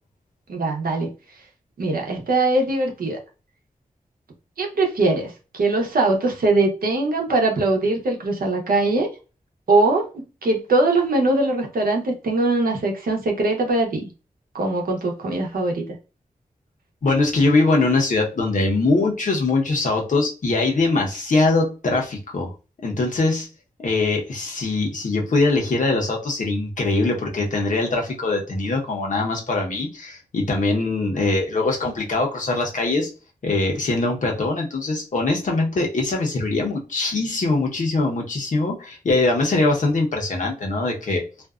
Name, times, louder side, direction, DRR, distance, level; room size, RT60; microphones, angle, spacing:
voice 1, 0.5-1.1 1.8-3.2 4.6-9.1 9.7-14.1 14.5-15.8, right 2 dB, 80° right, 2 dB, 0.8 m, -21 dB
voice 2, 17.0-22.5 22.8-23.5 23.8-33.1 33.4-41.2, left 3 dB, 60° left, 0 dB, 0.9 m, -22 dB
2.6 x 2.3 x 2.3 m, 0.32 s
wide cardioid pair, 130°, 15 cm